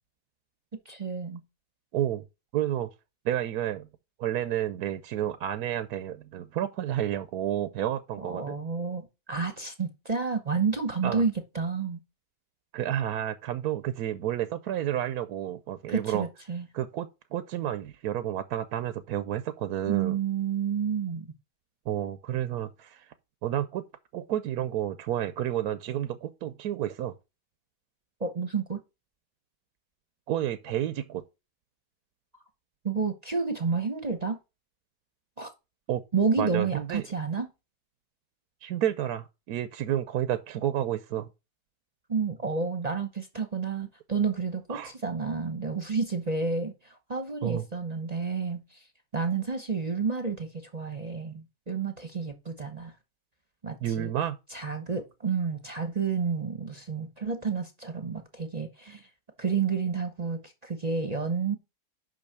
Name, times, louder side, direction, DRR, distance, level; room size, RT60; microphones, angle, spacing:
voice 1, 0.9-1.4 8.2-12.0 15.9-16.6 19.9-21.3 28.2-28.8 32.8-34.4 35.4-35.5 36.1-37.5 42.1-48.8 49.1-52.9 53.6-54.1 54.5-59.1 59.4-61.6, right 5 dB, 30° right, 0.9 m, -30 dB
voice 2, 1.9-2.2 2.5-2.9 3.2-3.9 4.2-8.6 11.0-11.2 12.7-16.3 16.7-20.2 21.9-23.1 23.4-23.9 24.1-27.1 30.3-31.2 35.9-36.0 36.4-37.0 38.6-41.3 44.7-44.9 47.4-47.6 53.8-54.4, right 11 dB, 70° right, 1.1 m, -30 dB
6.2 x 5.6 x 6.7 m
omnidirectional pair, 1.8 m